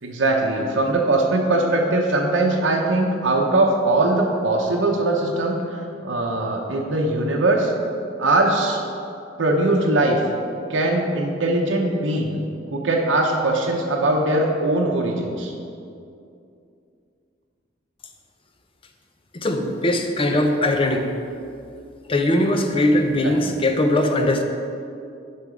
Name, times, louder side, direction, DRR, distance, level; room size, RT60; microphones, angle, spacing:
voice 1, 0.0-7.7 8.2-8.8 9.4-10.3 10.7-12.4 12.7-15.5 23.2-23.5, right 2 dB, 75° right, 0 dB, 0.8 m, -21 dB
voice 2, 19.3-21.1 22.1-24.4, left 1 dB, 30° left, 5 dB, 0.6 m, -20 dB
6.8 x 5.7 x 5.0 m, 2.5 s
head